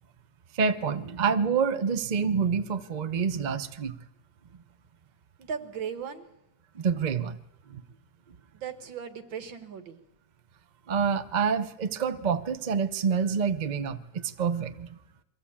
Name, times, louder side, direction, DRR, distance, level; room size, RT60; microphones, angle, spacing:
voice 1, 0.5-3.9 6.7-7.4 7.7-7.8 10.9-15.0, right 6 dB, 45° right, 10 dB, 0.5 m, -27 dB
voice 2, 5.4-6.3 8.5-10.0, right 7 dB, 80° right, 8 dB, 2.3 m, -37 dB
23.0 x 15.0 x 8.7 m, 0.90 s
omnidirectional pair, 2.1 m